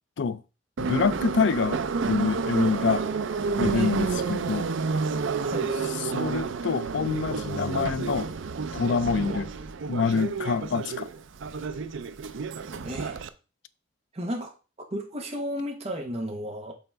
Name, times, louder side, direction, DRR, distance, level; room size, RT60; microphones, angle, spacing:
voice 1, 0.8-3.1 3.6-4.7 6.0-8.3 8.7-9.5 9.9-11.1, left 5 dB, 70° left, 0.4 m, -26 dB
Subway metro underground, 0.8-13.3, right 5 dB, 85° right, 0.5 m, -30 dB
voice 2, 3.7-4.2 5.4-5.7 9.2-9.4 12.8-13.2 14.1-14.5 14.9-16.7, equal, 35° right, 1.1 m, -33 dB
5.6 x 4.0 x 4.5 m
head